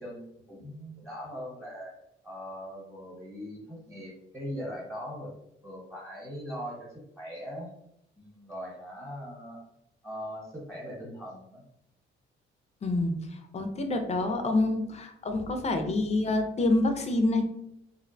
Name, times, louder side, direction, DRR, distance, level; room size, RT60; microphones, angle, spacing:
voice 1, 0.0-1.9 2.2-5.3 5.6-7.7 8.2-9.6 10.0-11.6, equal, 5° right, -5 dB, 1.0 m, -40 dB
voice 2, 12.8-17.5, left 2 dB, 35° left, 6 dB, 0.4 m, -27 dB
2.5 x 2.1 x 2.6 m, 0.78 s
cardioid pair, 90°, 20 cm